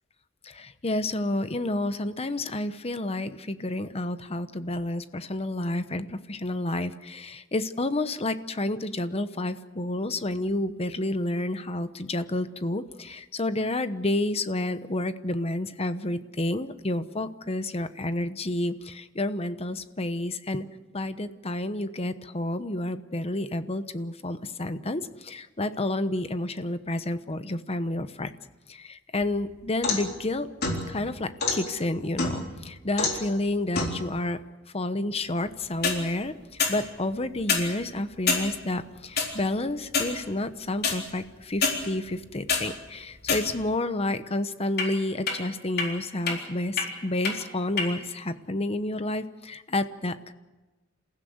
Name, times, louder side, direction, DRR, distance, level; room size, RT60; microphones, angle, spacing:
voice 1, 0.5-20.6 20.9-28.3 28.8-30.5 30.9-34.4 34.7-36.3 36.7-50.3, left 1 dB, 30° left, 11 dB, 1.0 m, -30 dB
sound 1, 29.2-30.1 30.6-31.6 32.2-32.6 33.0-33.3 33.7-34.0 35.6-36.0 36.6-36.8 37.4-37.7 38.3-38.4 39.2-39.3 39.9-40.1 40.8-40.9 41.6-41.7 42.2-42.6 43.2-43.7 44.8-44.9 45.3-45.4 45.8-45.9 46.3-46.4 46.8-46.9 47.2-47.3 47.8-47.9, left 4 dB, 55° left, 4.0 m, -26 dB
28.5 x 15.5 x 8.0 m, 1.2 s
head